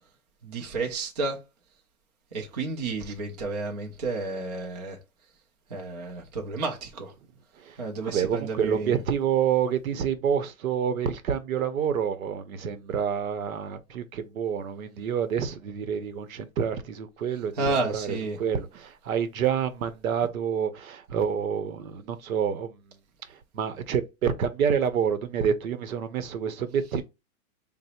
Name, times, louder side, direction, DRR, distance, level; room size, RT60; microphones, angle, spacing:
voice 1, 0.4-1.4 2.3-5.0 5.7-7.1 7.8-9.0 17.6-18.4, right 3 dB, 30° right, 0.4 m, -31 dB
voice 2, 7.6-23.0 23.3-27.0, right 7 dB, 75° right, 0.7 m, -28 dB
3.8 x 2.0 x 4.2 m
hypercardioid pair, 165°, 42 cm